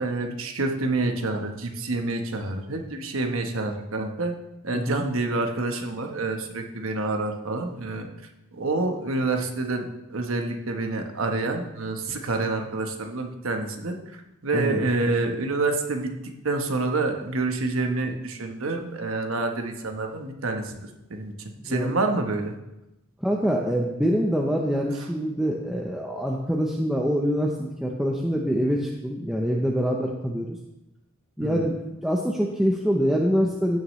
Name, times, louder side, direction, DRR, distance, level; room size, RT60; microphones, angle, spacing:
voice 1, 0.0-4.3 4.6-8.1 8.5-14.0 14.4-20.7 21.1-22.5 31.4-31.6, right 2 dB, 70° right, 4 dB, 1.1 m, -27 dB
voice 2, 14.5-14.9 21.6-21.9 23.2-30.6 31.4-33.8, equal, ahead, -1 dB, 0.7 m, -25 dB
15.5 x 6.5 x 3.1 m, 0.93 s
head